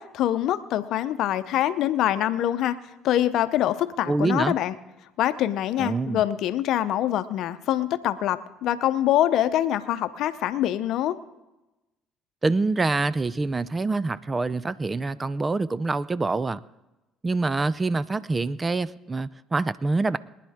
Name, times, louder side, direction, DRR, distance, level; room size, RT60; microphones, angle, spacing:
voice 1, 0.0-2.8 3.0-4.7 5.2-11.2, left 12 dB, 65° left, 13 dB, 0.7 m, -24 dB
voice 2, 4.1-4.5 5.8-6.2 12.4-16.6 17.2-20.2, right 3 dB, 25° right, 18 dB, 0.5 m, -25 dB
23.0 x 10.0 x 3.6 m, 1.0 s
hypercardioid pair, 60°, 0 cm